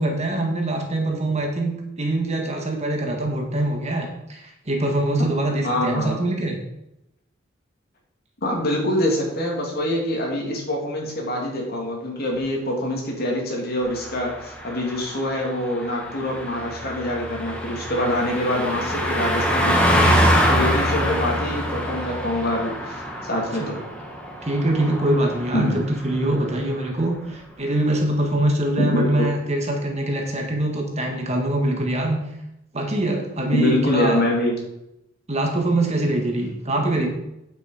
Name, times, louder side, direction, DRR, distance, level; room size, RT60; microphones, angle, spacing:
voice 1, 0.0-6.6 23.6-23.9 24.4-32.2 32.7-34.2 35.3-37.1, right 1 dB, 35° right, 2 dB, 1.7 m, -23 dB
voice 2, 5.6-6.2 8.4-20.1 20.5-23.8 25.5-25.9 28.8-29.3 33.5-34.6, left 1 dB, 50° left, -1 dB, 3.0 m, -25 dB
Car passing by, 13.9-25.8 26.1-26.4, equal, 10° left, 2.1 m, -24 dB
9.3 x 7.8 x 5.1 m, 0.86 s
head